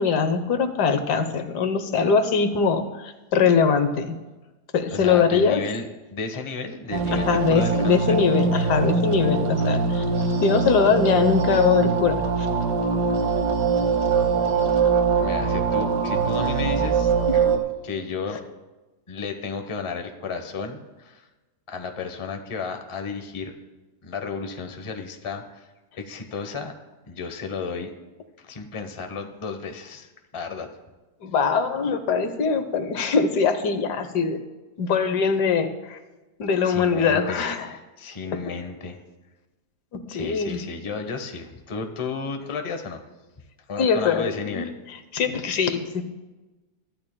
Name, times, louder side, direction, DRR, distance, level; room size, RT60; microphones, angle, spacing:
voice 1, 0.0-4.2 4.7-5.6 7.3-10.0 10.4-12.5 17.3-17.5 31.2-34.4 34.8-36.0 36.4-37.7 39.9-40.6 43.8-44.7 45.1-46.0, left 5 dB, 80° left, 9 dB, 1.5 m, -22 dB
voice 2, 4.9-8.2 14.2-14.3 15.2-17.1 17.8-18.4 19.1-21.3 21.7-23.5 24.0-25.7 26.0-26.7 27.0-27.9 28.4-30.7 36.6-39.0 40.1-43.1 43.7-44.7, left 5 dB, 25° left, 6 dB, 0.8 m, -33 dB
sound 1, 6.9-17.6, right 5 dB, 80° right, 1.7 m, -22 dB
23.5 x 12.5 x 2.2 m, 1.2 s
omnidirectional pair, 1.7 m